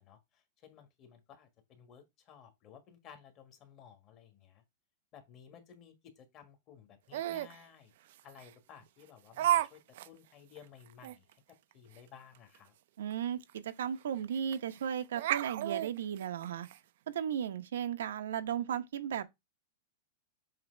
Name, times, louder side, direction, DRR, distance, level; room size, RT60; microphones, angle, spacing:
voice 1, 0.0-4.6 5.1-7.9 8.2-11.4 11.7-12.7, left 8 dB, 30° left, 1.5 m, -56 dB
Laughter, 7.1-7.6 8.4-8.5 9.4-9.7 10.0-10.1 10.6-10.7 11.0-11.2 13.1-13.2 13.5-13.6 14.5-14.8 15.2-16.8, right 12 dB, 60° right, 0.4 m, -31 dB
voice 2, 13.0-16.7 17.1-19.2, right 9 dB, 90° right, 0.9 m, -35 dB
7.6 x 3.0 x 4.4 m
supercardioid pair, 160°, 0 cm